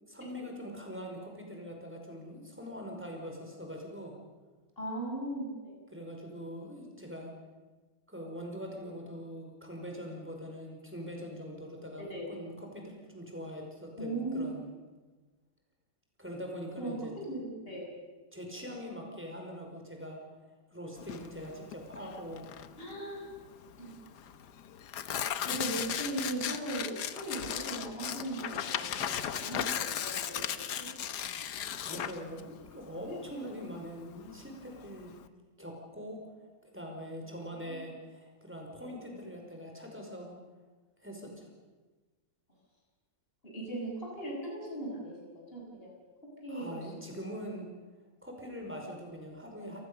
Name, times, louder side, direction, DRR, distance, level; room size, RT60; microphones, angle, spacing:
voice 1, 0.0-4.1 5.9-7.3 8.1-14.6 16.2-17.1 18.3-20.2 20.7-22.5 31.6-35.2 35.6-36.2 36.6-40.3 41.0-41.5 46.5-47.7 48.2-49.8, equal, 5° right, 1 dB, 5.2 m, -43 dB
voice 2, 4.8-5.7 12.0-12.3 14.0-14.5 16.8-16.9 17.2-17.9 22.8-23.3 23.8-23.9 25.5-30.4 30.8-30.9 33.1-33.2 37.6-37.8 38.8-38.9 43.4-46.0 46.4-47.0, right 1 dB, 30° left, -2 dB, 8.2 m, -38 dB
Tearing, 21.0-35.3, left 9 dB, 65° left, 1.5 m, -37 dB
28.5 x 19.0 x 7.0 m, 1.3 s
omnidirectional pair, 2.0 m